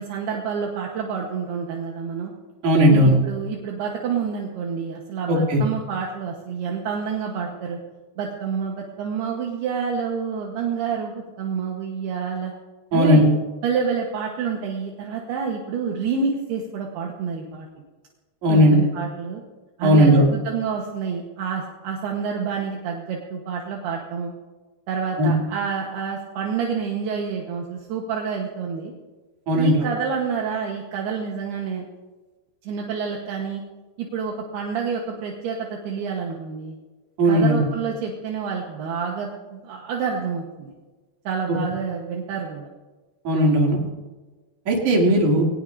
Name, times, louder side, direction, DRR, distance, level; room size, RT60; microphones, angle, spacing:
voice 1, 0.0-2.3 2.9-7.8 8.2-12.5 12.9-13.2 13.6-17.7 18.5-19.4 19.8-24.3 24.9-28.9 29.5-31.9 32.6-33.6 34.0-36.8 37.3-40.7 41.2-42.7, right 6 dB, 70° right, 0 dB, 3.1 m, -28 dB
voice 2, 2.6-3.2 5.3-5.6 12.9-13.3 18.4-18.8 19.8-20.2 25.2-25.3 29.5-29.7 37.2-37.6 43.3-43.8 44.7-45.4, equal, 50° right, -2 dB, 3.7 m, -16 dB
22.0 x 18.0 x 2.7 m, 1.2 s
omnidirectional pair, 4.9 m